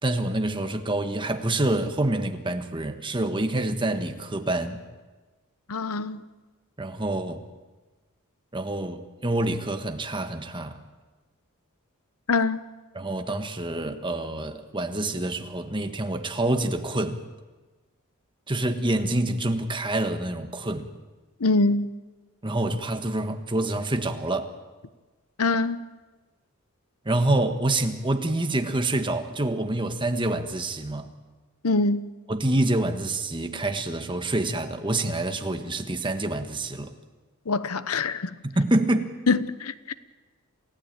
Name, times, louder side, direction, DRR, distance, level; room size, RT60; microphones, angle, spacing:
voice 1, 0.0-4.8 6.8-7.4 8.5-10.8 12.9-17.2 18.5-20.9 22.4-24.5 27.0-31.1 32.3-36.9 38.4-39.1, right 1 dB, 25° right, 1.4 m, -27 dB
voice 2, 5.7-6.2 12.3-12.6 21.4-21.9 25.4-25.8 31.6-32.1 37.5-38.3 39.3-39.9, left 3 dB, 90° left, 0.9 m, -24 dB
28.0 x 16.0 x 9.0 m
head